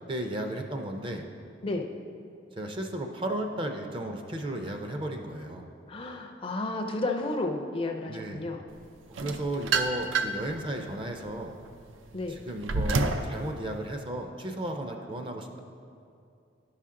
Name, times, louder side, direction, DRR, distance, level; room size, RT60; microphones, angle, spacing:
voice 1, 0.1-1.2 2.6-5.7 8.1-8.4 9.2-11.5 12.3-15.6, right 1 dB, 25° right, 4 dB, 0.5 m, -34 dB
voice 2, 5.9-8.6 12.1-12.4, left 2 dB, 30° left, 3 dB, 0.4 m, -32 dB
sound 1, 9.1-10.5 11.0-13.3, right 4 dB, 80° right, 0.5 m, -29 dB
11.0 x 5.7 x 3.7 m, 2.5 s
head